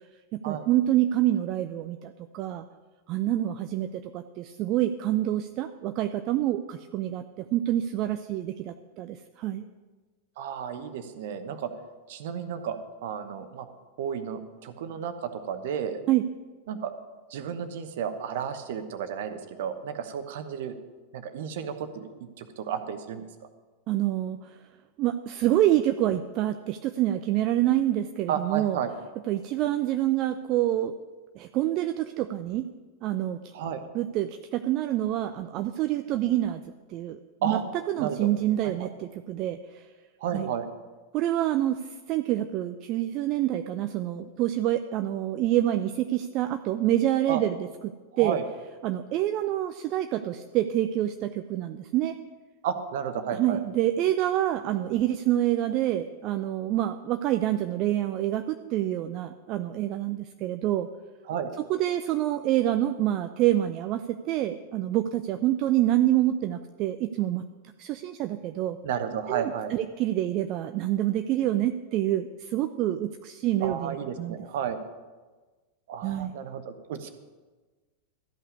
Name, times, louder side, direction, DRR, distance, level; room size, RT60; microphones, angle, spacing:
voice 1, 0.3-2.6 3.1-9.7 16.1-16.3 23.9-24.6 25.0-28.8 29.3-30.9 31.4-32.7 33.0-33.4 33.9-36.6 36.9-37.6 37.9-39.9 40.3-40.5 41.1-48.4 48.8-52.2 53.3-60.9 61.6-67.4 67.8-68.8 69.3-74.4 76.0-76.3, right 13 dB, 40° right, 9 dB, 0.5 m, -27 dB
voice 2, 10.4-11.7 12.1-12.8 13.0-13.7 14.0-16.0 16.7-16.9 17.3-20.8 21.1-22.1 22.4-23.2 28.3-28.9 33.5-33.8 37.4-37.6 38.0-38.3 38.6-38.9 40.2-40.7 47.3-47.4 48.1-48.4 52.6-53.6 61.3-61.5 68.8-69.7 73.6-74.8 75.9-77.1, right 8 dB, 55° right, 9 dB, 1.1 m, -32 dB
13.5 x 5.6 x 9.5 m, 1.3 s
figure-of-eight pair, 90°, 0 cm